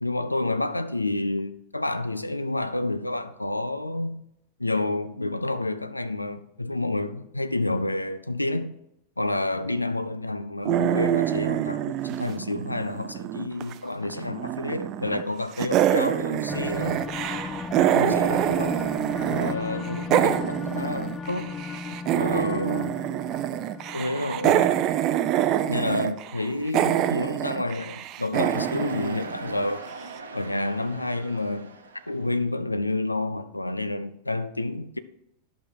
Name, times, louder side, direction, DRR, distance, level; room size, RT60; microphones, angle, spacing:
voice 1, 0.0-4.2 4.6-8.7 9.2-17.1 17.9-18.8 19.3-21.6 22.1-23.0 23.9-24.8 25.6-29.9 30.3-31.7 32.1-35.0, left 2 dB, 85° left, 0.5 m, -29 dB
sound 1, 10.7-13.7 14.0-15.3 15.6-19.5 19.8-29.9, right 12 dB, 35° right, 0.5 m, -26 dB
sound 2, 16.5-25.9, left 4 dB, 20° left, 0.4 m, -36 dB
sound 3, 28.3-32.4, right 3 dB, 75° right, 1.0 m, -41 dB
11.0 x 5.5 x 4.7 m
figure-of-eight pair, 90°, 0 cm